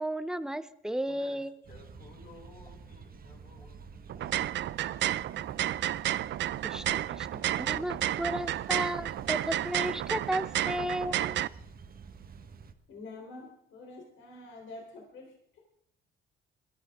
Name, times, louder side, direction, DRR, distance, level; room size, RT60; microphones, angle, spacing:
voice 1, 0.0-1.5 6.6-11.4, right 1 dB, 5° right, 12 dB, 0.9 m, -34 dB
voice 2, 1.0-4.8, left 3 dB, 50° left, -1 dB, 6.6 m, -56 dB
sound 1, 1.6-12.7, right 4 dB, 50° right, 1.5 m, -49 dB
sound 2, 4.1-11.5, right 13 dB, 65° right, 0.5 m, -31 dB
voice 3, 12.9-15.6, left 2 dB, 75° left, 1 dB, 3.8 m, -47 dB
21.0 x 13.5 x 3.7 m, 0.68 s
cardioid pair, 90°, 20 cm